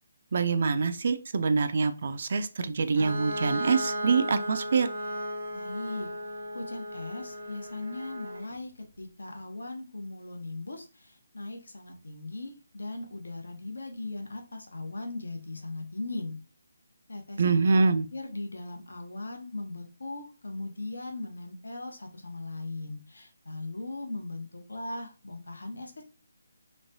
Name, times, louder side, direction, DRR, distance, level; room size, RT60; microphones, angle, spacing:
voice 1, 0.3-4.9 17.4-18.1, right 4 dB, 50° right, 9 dB, 0.3 m, -25 dB
Bowed string instrument, 3.0-8.6, equal, 80° right, 1.3 m, -35 dB
voice 2, 5.5-6.1 6.5-8.7 9.0-16.4 17.1-17.9 18.1-26.1, left 2 dB, 90° left, 3 dB, 0.7 m, -39 dB
3.1 x 2.2 x 2.6 m, 0.33 s
hypercardioid pair, 165°, 0 cm